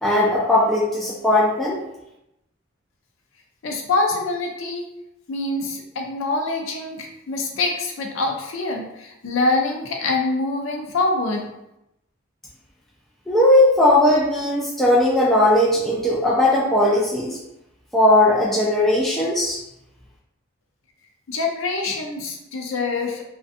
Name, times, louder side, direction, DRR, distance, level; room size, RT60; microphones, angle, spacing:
voice 1, 0.0-1.8 13.3-17.4 17.9-19.6, left 1 dB, ahead, -6 dB, 0.3 m, -18 dB
voice 2, 3.6-4.9 5.3-11.5 21.3-23.2, left 3 dB, 85° left, 1 dB, 0.5 m, -25 dB
2.5 x 2.2 x 2.5 m, 0.87 s
head